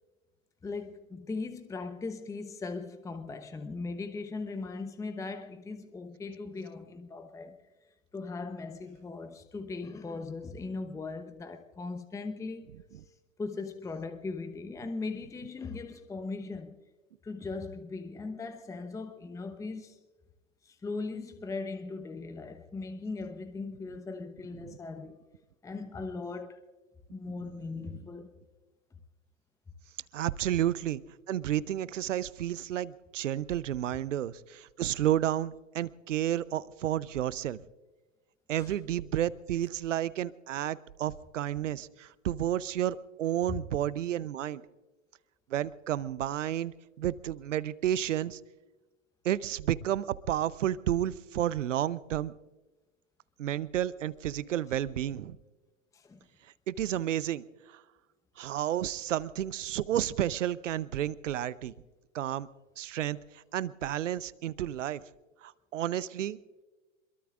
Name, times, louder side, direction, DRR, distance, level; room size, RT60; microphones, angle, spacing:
voice 1, 0.6-7.6 8.1-12.7 13.4-16.8 17.2-20.0 20.6-25.2 25.6-26.6 27.1-28.3 38.6-38.7 41.6-41.7 43.5-43.6 55.9-56.2, left 3 dB, 10° left, 0.9 m, -39 dB
voice 2, 30.1-31.0 31.3-37.6 38.5-44.6 45.5-48.4 49.2-52.3 53.4-55.4 56.7-57.8 58.4-61.7 62.1-62.5 62.8-65.0 65.4-66.4, right 12 dB, 70° right, 0.8 m, -31 dB
26.5 x 22.5 x 2.5 m
figure-of-eight pair, 95°, 39 cm